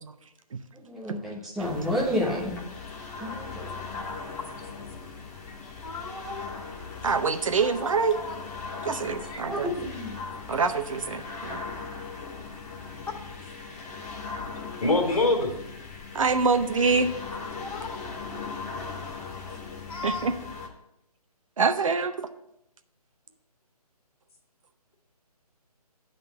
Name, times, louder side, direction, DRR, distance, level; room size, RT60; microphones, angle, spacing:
voice 1, 0.8-2.6 3.2-3.7 9.5-10.2, left 1 dB, ahead, -5 dB, 0.4 m, -30 dB
sound 1, 1.6-20.7, left 4 dB, 25° left, 1.1 m, -39 dB
voice 2, 5.8-6.4 7.6-8.4 8.7-9.4 14.8-15.5 17.5-17.9 19.9-20.3, left 2 dB, 60° left, 2 dB, 2.1 m, -29 dB
voice 3, 7.0-8.2 8.8-9.7 10.5-11.6 16.1-17.1 20.0-20.3 21.6-22.3, right 4 dB, 55° right, 9 dB, 0.7 m, -25 dB
9.3 x 3.8 x 6.6 m, 0.81 s
figure-of-eight pair, 155°, 20 cm